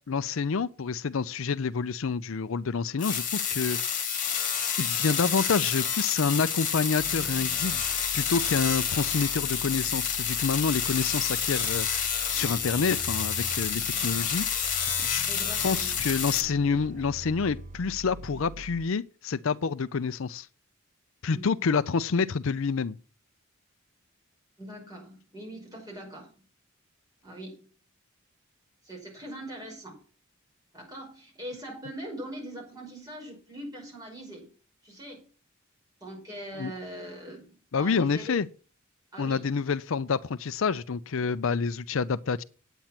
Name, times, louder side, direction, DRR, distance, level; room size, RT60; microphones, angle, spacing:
voice 1, 0.1-4.2 4.6-15.2 15.6-20.5 21.2-23.0 36.6-36.7 37.7-38.5 39.2-42.4, left 5 dB, 65° left, 0.5 m, -28 dB
sound 1, 3.0-16.4, left 7 dB, 40° left, 2.0 m, -29 dB
sound 2, 7.0-18.9, right 2 dB, 35° right, 0.5 m, -44 dB
voice 2, 15.3-16.0 21.3-21.7 24.6-26.4 27.2-27.7 28.8-30.0 30.7-34.5 34.8-35.3 36.0-38.4 39.1-39.4, right 1 dB, 20° right, 5.5 m, -41 dB
9.2 x 8.8 x 5.8 m
head